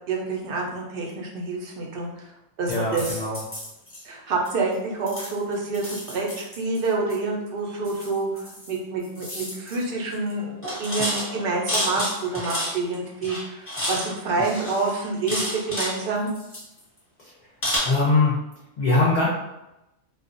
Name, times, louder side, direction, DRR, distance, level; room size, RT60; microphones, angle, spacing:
voice 1, 0.1-2.3 2.6-3.2 4.0-16.3, right 3 dB, 60° right, -1 dB, 0.6 m, -28 dB
voice 2, 2.7-3.4 17.8-18.3 18.8-19.3, left 3 dB, 60° left, -6 dB, 0.4 m, -21 dB
sound 1, 2.7-4.0 4.5-4.7 5.1-7.2 7.8-8.8 9.0-9.8 10.1-10.3 10.6-13.0 13.2-14.1 14.4-16.0 16.3-17.0 17.6-17.8, left 1 dB, 10° left, 0.8 m, -31 dB
2.3 x 2.1 x 2.5 m, 0.89 s
omnidirectional pair, 1.4 m